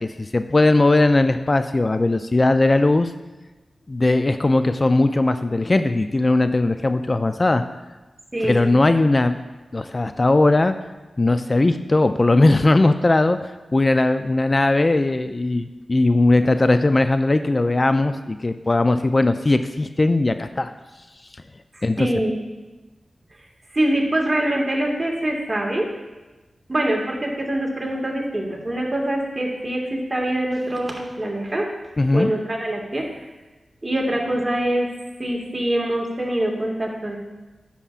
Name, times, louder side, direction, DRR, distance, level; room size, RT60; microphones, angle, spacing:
voice 1, 0.0-3.1 3.9-7.6 8.4-9.4 9.7-10.7 11.2-20.7 21.8-22.1 32.0-32.3, left 2 dB, 40° left, 9 dB, 0.3 m, -19 dB
voice 2, 8.3-8.6 21.7-22.3 23.7-25.8 26.7-31.6 32.1-33.0 33.8-34.9 35.2-37.2, right 1 dB, 30° right, -1 dB, 1.8 m, -24 dB
9.9 x 7.0 x 2.5 m, 1.2 s
cardioid pair, 45°, 0 cm